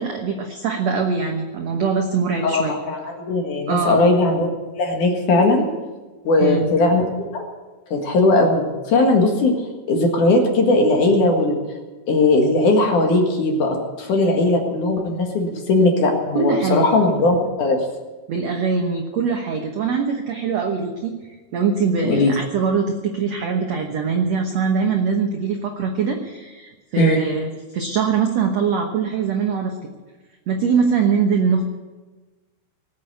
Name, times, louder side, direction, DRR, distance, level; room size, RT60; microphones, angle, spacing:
voice 1, 0.0-2.7 3.7-4.0 6.4-6.7 16.3-17.0 18.3-21.1 21.5-29.7 30.5-31.6, right 5 dB, 80° right, 3 dB, 1.5 m, -22 dB
voice 2, 2.4-4.5 4.7-5.7 6.2-7.0 7.3-7.4 7.9-9.5 9.9-11.6 12.1-17.8 22.1-22.3 27.0-27.2, left 2 dB, 55° left, 2 dB, 2.9 m, -18 dB
19.0 x 8.5 x 8.2 m, 1.3 s
omnidirectional pair, 4.8 m